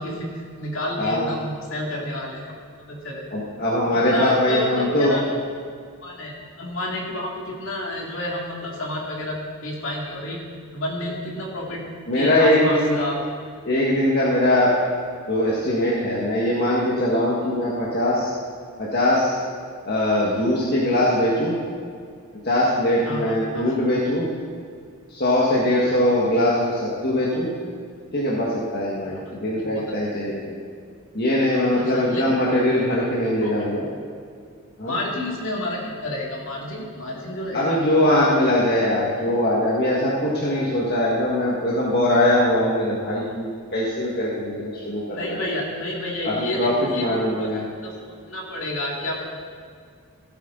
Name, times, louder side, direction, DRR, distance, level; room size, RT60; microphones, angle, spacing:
voice 1, 0.0-2.5 2.9-3.3 3.9-5.3 6.0-6.3 6.6-10.4 10.7-11.8 12.1-13.2 23.0-23.8 29.0-29.2 29.6-30.1 31.7-32.6 33.4-33.5 34.9-37.8 38.1-38.4 45.1-47.5 47.8-49.2, left 1 dB, 60° left, -2 dB, 2.5 m, -30 dB
voice 2, 1.0-1.3 3.3-5.1 12.1-13.0 13.6-14.7 15.3-18.3 18.8-19.4 19.8-21.6 22.4-24.3 25.1-27.5 28.1-30.6 31.1-33.9 34.8-35.0 37.5-45.4 46.2-47.6, left 1 dB, 45° left, -6 dB, 1.7 m, -21 dB
16.5 x 9.0 x 3.9 m, 2.2 s
head